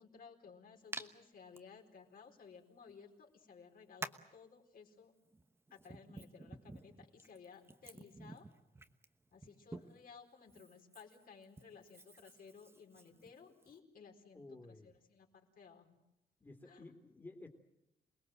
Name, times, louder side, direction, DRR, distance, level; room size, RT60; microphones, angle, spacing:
voice 1, 0.0-5.1 5.7-8.5 9.3-14.4 14.7-16.0 16.7-16.8, left 5 dB, 60° left, 2 dB, 4.5 m, -58 dB
Hands, 0.9-1.1 1.5-1.6 2.9-3.0 4.0-4.3 5.3-10.1 10.5-13.8, right 2 dB, 15° right, 1.1 m, -50 dB
voice 2, 14.3-15.0 16.4-17.5, left 2 dB, 15° left, -4 dB, 3.0 m, -53 dB
28.0 x 20.5 x 7.8 m, 0.91 s
wide cardioid pair, 155°, 17 cm